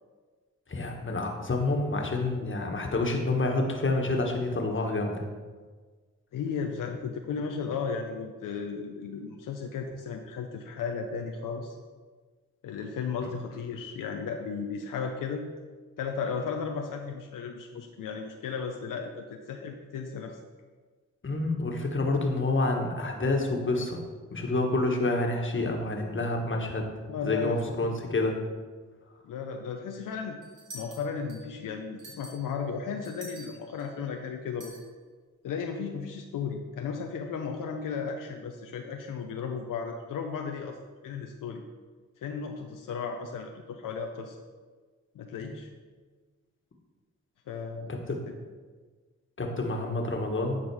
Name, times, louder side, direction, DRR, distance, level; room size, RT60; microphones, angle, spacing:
voice 1, 0.7-5.2 13.2-13.3 21.2-24.0 24.3-26.8 27.2-28.4 45.4-45.5 47.9-48.2 49.4-50.6, left 2 dB, 40° left, 2 dB, 1.5 m, -28 dB
voice 2, 6.3-11.7 12.6-15.5 16.0-20.4 27.1-28.0 29.2-30.4 30.7-34.7 35.4-40.8 41.0-41.6 42.2-44.4 45.1-45.7 47.5-48.0 48.3-48.4 49.6-49.7, left 5 dB, 85° left, 3 dB, 0.6 m, -35 dB
sound 1, 30.4-31.6 32.0-34.0 34.6-34.8, right 1 dB, 75° right, 2.0 m, -47 dB
9.8 x 3.9 x 4.8 m, 1.4 s
cardioid pair, 50°, 31 cm